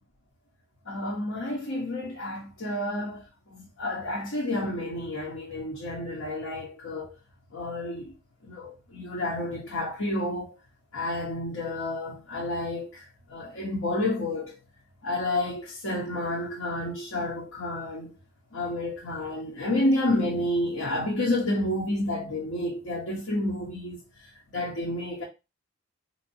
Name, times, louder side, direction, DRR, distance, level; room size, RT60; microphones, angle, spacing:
voice 1, 0.9-3.2 3.5-7.2 7.5-8.1 8.4-10.5 10.9-14.5 15.0-18.1 18.5-24.0 24.5-25.2, left 1 dB, 75° left, 1.2 m, -30 dB
4.1 x 2.9 x 2.8 m
head